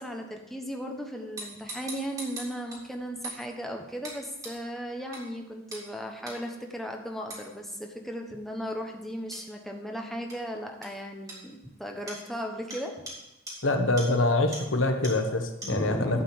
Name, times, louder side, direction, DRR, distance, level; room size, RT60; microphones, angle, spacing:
voice 1, 0.0-13.0 15.6-16.2, equal, ahead, 2 dB, 1.1 m, -36 dB
sound 1, 1.4-2.8 3.2-3.4 4.0-4.2 4.4-4.5 5.1-5.2 5.7-5.9 6.3-6.4 7.3-7.4 9.3-9.4 10.3-10.4 10.8-10.9 11.3-11.4 12.1-12.2 12.7-12.8 13.1-13.2 13.5-13.6 14.0-14.1 14.5-14.6 15.0-15.1 15.6-15.7, right 2 dB, 20° right, 3.6 m, -39 dB
voice 2, 13.6-16.2, left 2 dB, 80° left, 5 dB, 1.3 m, -25 dB
11.5 x 5.0 x 8.5 m, 0.93 s
head